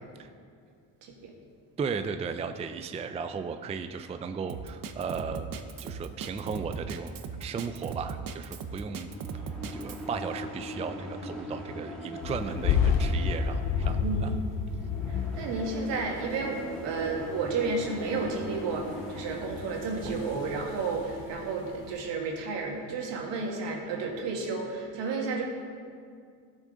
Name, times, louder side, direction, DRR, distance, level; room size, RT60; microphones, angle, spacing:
voice 1, 1.0-1.3 14.0-14.3 15.1-25.4, right 4 dB, 75° right, 0 dB, 2.0 m, -32 dB
voice 2, 1.8-5.5 5.8-14.4, right 5 dB, 15° right, 8 dB, 0.4 m, -36 dB
Drum kit, 4.5-10.0, right 6 dB, 50° right, 0.8 m, -38 dB
sound 1, 8.8-19.9, equal, ahead, 2.1 m, -41 dB
sound 2, 12.2-22.0, left 6 dB, 75° left, 0.9 m, -31 dB
14.5 x 6.4 x 3.9 m, 2.2 s
cardioid pair, 100°, 43 cm